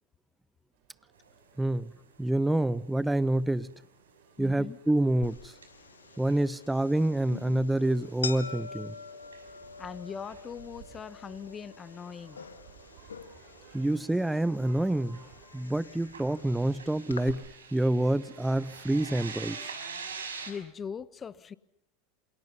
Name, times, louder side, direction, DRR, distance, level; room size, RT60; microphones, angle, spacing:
sound 1, 0.7-15.5, right 8 dB, 60° right, 5.0 m, -58 dB
sound 2, 1.2-1.8 2.0-2.2 2.6-2.7 3.0-4.1 4.4-6.4 6.9-10.8 11.1-11.5 11.8-11.9 12.2-12.4 12.9-14.7 15.1-20.5, right 5 dB, 85° right, 5.1 m, -46 dB
voice 1, 1.6-1.9 2.2-3.7 4.4-5.5 6.2-8.9 13.7-15.2 15.5-17.4 17.7-19.6, right 1 dB, 5° right, 0.9 m, -27 dB
voice 2, 4.4-4.8 9.8-12.5 20.5-21.5, left 7 dB, 25° left, 1.3 m, -40 dB
sound 3, 5.2-17.3, left 6 dB, 85° left, 1.7 m, -45 dB
28.5 x 27.5 x 5.6 m
hypercardioid pair, 90°, 0 cm